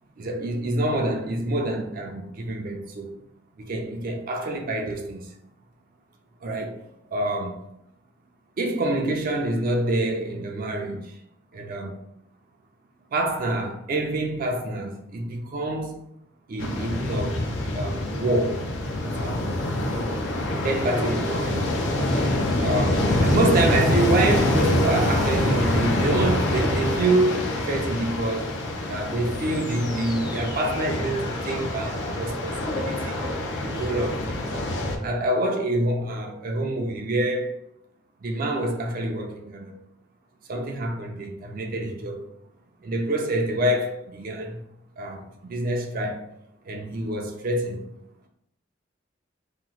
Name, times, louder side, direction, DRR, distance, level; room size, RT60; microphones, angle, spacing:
voice 1, 0.2-3.1 3.6-5.3 6.4-6.8 7.1-7.6 8.6-11.2 11.5-12.0 13.1-16.0 16.5-17.4 17.7-18.7 19.0-19.6 20.6-21.6 22.6-28.6 28.9-34.5 35.0-37.6 38.2-39.8 40.5-42.3 42.8-44.6 45.0-46.3 46.7-47.8, right 1 dB, 50° right, 0.4 m, -27 dB
sound 1, 16.6-35.0, left 1 dB, 75° left, 0.6 m, -25 dB
sound 2, 29.3-35.0, left 2 dB, 20° left, 0.4 m, -40 dB
2.9 x 2.1 x 3.9 m
head